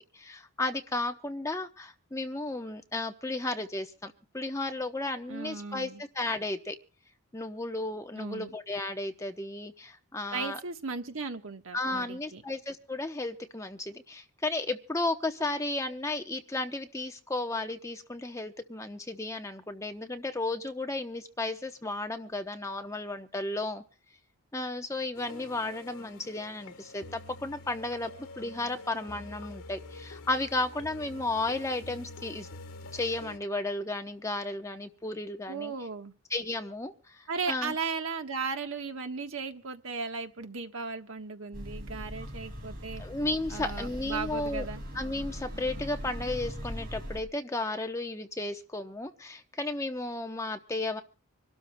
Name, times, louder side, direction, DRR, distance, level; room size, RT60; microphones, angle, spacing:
voice 1, 0.1-6.8 7.3-10.6 11.7-23.8 24.5-32.5 32.9-35.7 36.3-37.7 43.0-44.7 44.9-51.0, left 2 dB, 15° left, 6 dB, 0.8 m, -34 dB
voice 2, 5.3-6.0 8.1-8.5 10.3-12.4 35.5-36.1 37.3-43.0 43.5-44.8, right 4 dB, 65° right, 6 dB, 1.3 m, -36 dB
sound 1, 25.1-33.4, left 2 dB, 85° left, 1.6 m, -46 dB
sound 2, 41.5-47.2, equal, 45° right, 5.1 m, -40 dB
26.0 x 12.5 x 2.2 m, 0.38 s
head